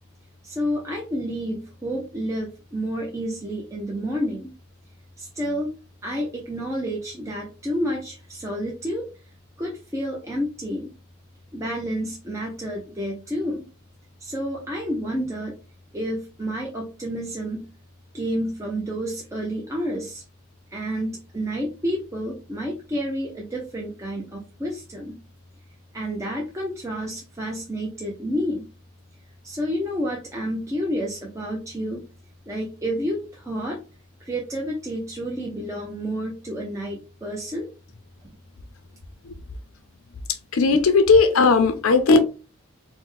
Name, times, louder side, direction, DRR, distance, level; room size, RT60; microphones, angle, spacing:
voice 1, 0.4-4.5 5.2-5.7 6.0-9.0 9.6-10.9 11.5-13.7 14.2-15.5 15.9-17.7 18.1-20.2 20.7-25.2 25.9-28.6 29.4-32.0 32.5-33.8 34.2-37.7, equal, 15° right, 0.5 m, -29 dB
voice 2, 40.5-42.2, left 4 dB, 75° left, 0.5 m, -16 dB
4.2 x 2.1 x 3.1 m
head